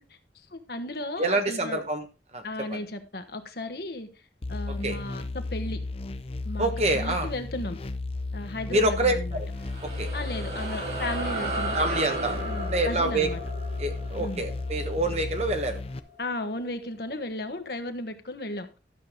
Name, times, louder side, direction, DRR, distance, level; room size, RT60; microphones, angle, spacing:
voice 1, 0.5-1.8 2.4-4.1 4.5-5.8 6.4-7.8 8.3-9.4 10.1-11.8 12.4-13.4 14.2-14.5 16.2-18.7, left 1 dB, 60° left, 1.2 m, -35 dB
voice 2, 1.2-2.0 2.3-2.4 2.7-2.8 4.8-5.0 6.6-7.3 8.7-9.5 10.0-10.1 11.7-12.3 12.7-13.3 13.8-15.8, right 2 dB, 35° right, 1.4 m, -26 dB
sound 1, 4.4-16.0, left 3 dB, 35° left, 0.6 m, -34 dB
sound 2, 9.4-16.2, right 2 dB, 70° right, 7.0 m, -35 dB
12.5 x 6.7 x 3.7 m
head